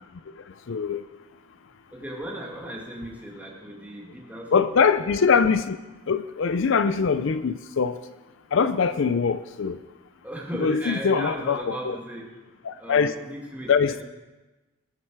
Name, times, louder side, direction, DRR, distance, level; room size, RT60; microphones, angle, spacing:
voice 1, 0.7-1.0 4.5-5.8 6.1-7.9 8.5-9.8 10.6-12.0 12.6-13.1 13.7-14.0, left 5 dB, 60° left, 12 dB, 0.4 m, -22 dB
voice 2, 1.9-4.5 10.2-12.3 12.8-14.0, right 1 dB, 5° right, -2 dB, 1.9 m, -36 dB
19.5 x 7.5 x 4.7 m, 1.1 s
head